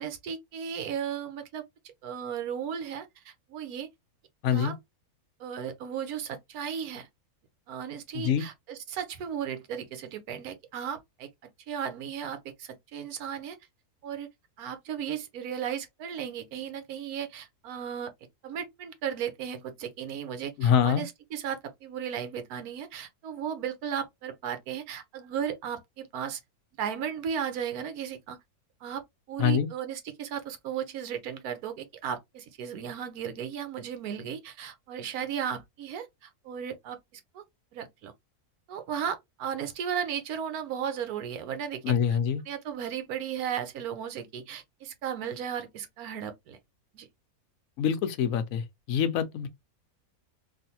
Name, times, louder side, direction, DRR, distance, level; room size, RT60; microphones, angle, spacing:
voice 1, 0.0-1.6 2.0-3.9 4.5-4.7 5.4-7.1 7.7-11.3 11.7-13.6 14.0-14.3 14.6-18.1 18.4-26.4 26.8-28.4 28.8-29.0 29.3-37.4 37.7-38.1 38.7-41.9 42.5-46.6 46.9-47.1, right 8 dB, 75° right, 1.2 m, -35 dB
voice 2, 4.4-4.7 8.1-8.5 20.6-21.0 29.4-29.7 41.8-42.4 47.8-49.5, left 8 dB, 70° left, 1.0 m, -25 dB
3.3 x 2.5 x 2.7 m
omnidirectional pair, 1.6 m